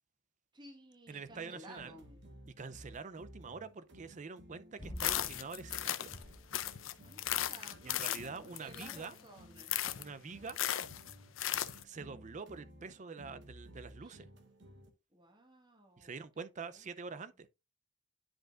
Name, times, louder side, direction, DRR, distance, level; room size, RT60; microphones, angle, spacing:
voice 1, 0.5-2.3 7.0-9.9 14.0-14.2 15.1-16.4 16.7-17.2, right 1 dB, 25° right, 1.6 m, -56 dB
voice 2, 1.1-1.9 2.5-6.1 7.8-9.2 9.9-10.6 11.8-14.3 16.0-17.5, right 4 dB, 40° right, 0.5 m, -46 dB
sound 1, 1.3-14.9, equal, 65° right, 1.0 m, -57 dB
sound 2, 4.8-5.5 6.1-7.0, equal, 25° left, 0.9 m, -48 dB
sound 3, 5.0-6.2 6.5-9.2 9.6-10.1 10.5-11.8, left 12 dB, 85° left, 0.6 m, -36 dB
9.9 x 5.2 x 2.5 m
head